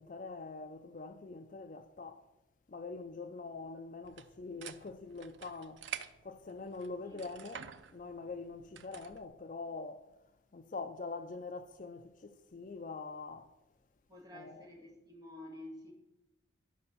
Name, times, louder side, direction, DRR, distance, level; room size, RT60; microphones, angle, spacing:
voice 1, 0.0-2.3 2.7-5.8 6.2-10.1 10.5-13.5 14.3-14.7, left 3 dB, 45° left, 0.4 m, -44 dB
sound 1, 4.0-9.2, right 8 dB, 85° right, 0.6 m, -49 dB
voice 2, 14.1-15.9, left 1 dB, 20° right, 2.3 m, -50 dB
11.5 x 5.2 x 6.4 m
head